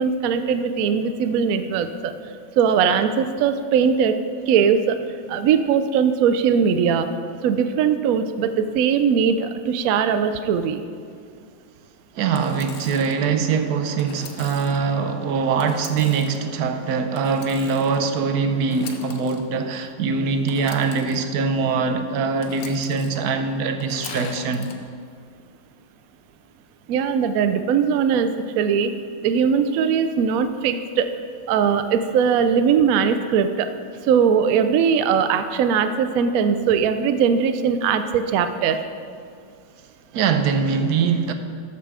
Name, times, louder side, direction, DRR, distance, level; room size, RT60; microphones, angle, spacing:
voice 1, 0.0-2.1 2.6-4.2 4.5-5.0 5.3-7.1 7.4-10.8 26.9-28.9 29.2-31.1 31.5-33.7 34.0-38.8, right 7 dB, 80° right, 9 dB, 0.7 m, -20 dB
voice 2, 12.2-24.7 40.1-41.3, right 5 dB, 65° right, 7 dB, 1.1 m, -23 dB
Engine / Sawing, 12.3-13.2 14.0-14.8 15.6-16.4 17.1-18.0 18.6-19.4 20.5-21.2 22.4-23.2 23.8-24.7, left 6 dB, 60° left, 1.0 m, -40 dB
13.0 x 5.7 x 4.8 m, 2.2 s
omnidirectional pair, 2.0 m